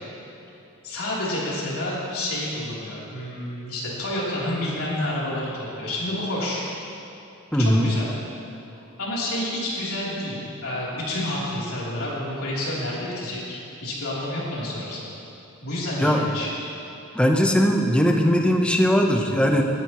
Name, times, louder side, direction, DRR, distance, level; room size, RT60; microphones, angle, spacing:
voice 1, 0.8-6.6 7.6-8.1 9.0-15.1 15.6-16.5, left 1 dB, 85° left, -6 dB, 3.2 m, -29 dB
voice 2, 7.5-7.9 16.0-16.2 17.1-19.6, equal, 5° left, 2 dB, 0.7 m, -19 dB
18.0 x 10.5 x 3.0 m, 2.9 s
head